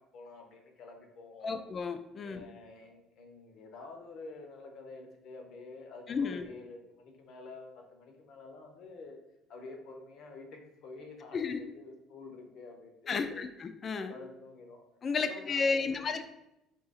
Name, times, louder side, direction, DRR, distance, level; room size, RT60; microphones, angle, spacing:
voice 1, 0.0-1.6 2.2-9.2 9.5-13.4 14.1-14.9 15.1-16.0, left 3 dB, 50° left, 3 dB, 0.7 m, -49 dB
voice 2, 1.4-2.4 6.1-6.4 11.3-11.6 13.1-14.1 15.0-16.2, left 5 dB, 25° left, 9 dB, 0.3 m, -32 dB
3.8 x 2.8 x 4.0 m, 0.87 s
cardioid pair, 160°, 0 cm